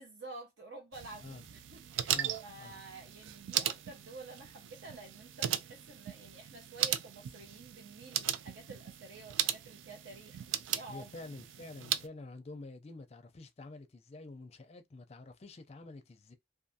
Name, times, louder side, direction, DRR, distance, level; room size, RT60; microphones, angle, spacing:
voice 1, 0.0-11.1, right 3 dB, 70° right, 0.7 m, -50 dB
sound 1, 0.9-12.1, right 11 dB, 90° right, 0.3 m, -37 dB
voice 2, 2.1-2.8 10.9-16.4, left 2 dB, 35° left, 0.4 m, -48 dB
2.5 x 2.5 x 2.6 m
head